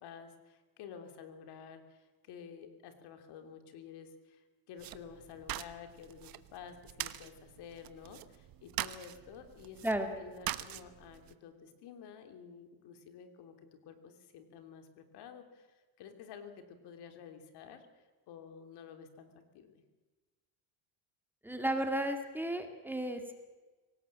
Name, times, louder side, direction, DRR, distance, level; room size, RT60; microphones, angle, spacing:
voice 1, 0.0-19.8, left 7 dB, 70° left, 7 dB, 3.3 m, -51 dB
sound 1, 4.8-11.3, right 14 dB, 55° right, 1.2 m, -43 dB
voice 2, 21.4-23.3, right 1 dB, 5° right, 5 dB, 2.3 m, -33 dB
24.5 x 18.5 x 7.6 m, 1.3 s
cardioid pair, 135°, 41 cm